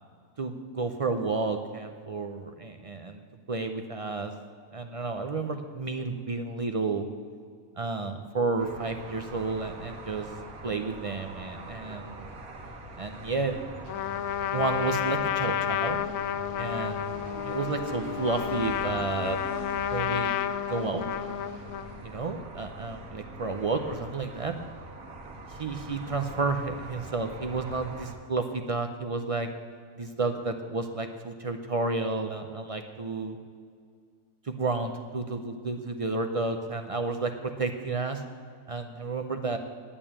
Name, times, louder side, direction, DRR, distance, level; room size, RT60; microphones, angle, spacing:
voice 1, 0.4-3.2 3.5-4.3 4.7-7.1 7.8-10.3 10.6-12.2 13.0-13.7 14.5-16.0 16.6-17.1 17.4-19.4 19.9-20.4 20.7-21.0 22.0-24.5 25.5-29.5 30.0-33.4 34.4-38.2 38.7-39.6, right 3 dB, 60° right, 6 dB, 0.3 m, -31 dB
sound 1, 8.6-28.1, right 2 dB, 90° right, 1.8 m, -43 dB
Trumpet, 13.9-22.0, left 10 dB, 80° left, 1.0 m, -31 dB
9.0 x 8.9 x 8.7 m, 2.1 s
omnidirectional pair, 1.5 m